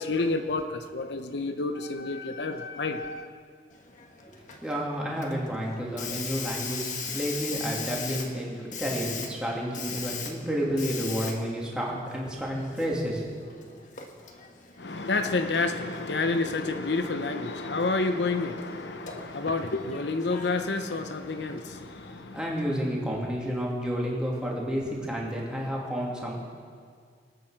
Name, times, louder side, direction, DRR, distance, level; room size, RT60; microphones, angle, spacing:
voice 1, 0.0-3.3 14.8-22.4, left 3 dB, 75° left, 7 dB, 0.8 m, -29 dB
Hiss, 3.7-22.1, left 5 dB, 45° left, 1.4 m, -41 dB
voice 2, 4.6-13.2 13.5-13.6 22.3-26.4, equal, 5° right, -4 dB, 2.7 m, -30 dB
20.5 x 9.3 x 6.5 m, 2.1 s
head